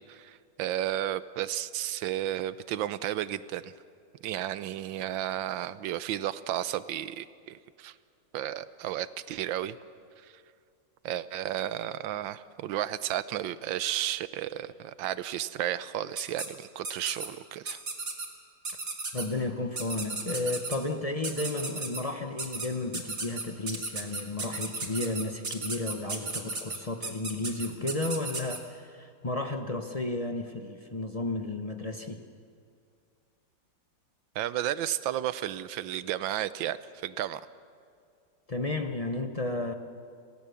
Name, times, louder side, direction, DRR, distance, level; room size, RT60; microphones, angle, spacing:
voice 1, 0.1-3.7 4.2-7.9 8.3-9.8 10.2-10.3 11.0-17.8 34.3-36.8 37.0-37.4, right 12 dB, 85° right, 15 dB, 1.5 m, -33 dB
sound 1, 16.2-16.5 16.8-17.3 17.7-18.3 18.6-19.2 19.8-20.8 21.2-22.0 22.4-22.7 22.9-28.6, right 3 dB, 45° right, 2.8 m, -34 dB
voice 2, 19.1-32.2 38.5-39.7, left 2 dB, 30° left, 6 dB, 0.7 m, -33 dB
27.5 x 18.0 x 7.0 m, 2.3 s
omnidirectional pair, 2.0 m